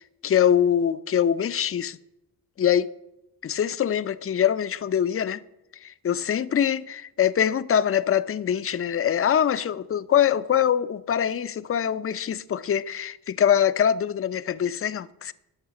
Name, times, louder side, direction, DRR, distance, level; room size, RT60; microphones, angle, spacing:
voice 1, 0.0-2.0 2.6-2.9 3.4-5.4 5.8-15.3, left 9 dB, 30° left, 0.5 m, -23 dB
11.0 x 5.7 x 7.0 m
cardioid pair, 65°, 43 cm